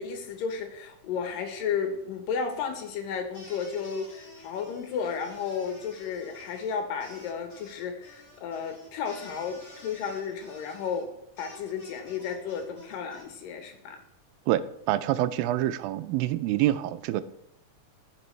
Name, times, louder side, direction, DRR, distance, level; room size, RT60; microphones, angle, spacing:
voice 1, 0.0-11.1 11.4-14.0, left 6 dB, 75° left, 5 dB, 2.7 m, -33 dB
sound 1, 3.3-13.2, left 1 dB, 35° left, 3.4 m, -51 dB
voice 2, 14.5-17.2, right 13 dB, 90° right, 14 dB, 2.3 m, -26 dB
15.0 x 6.0 x 3.2 m, 0.83 s
omnidirectional pair, 4.1 m